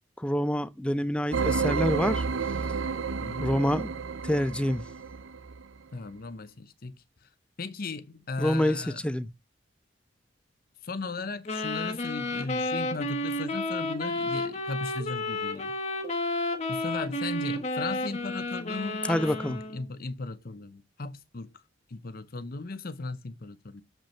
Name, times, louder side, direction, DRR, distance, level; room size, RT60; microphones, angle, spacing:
voice 1, 0.2-2.2 3.4-3.9 4.2-4.8 8.4-9.3 19.1-19.6, left 1 dB, 5° left, 0.5 m, -27 dB
sound 1, 1.3-5.6, right 5 dB, 90° right, 0.6 m, -30 dB
voice 2, 3.2-3.6 5.9-7.0 7.6-9.0 10.8-15.7 16.7-21.5 21.9-23.8, left 3 dB, 50° left, 0.8 m, -37 dB
sound 2, 11.4-19.8, left 2 dB, 35° left, 1.3 m, -31 dB
7.6 x 5.3 x 4.3 m
head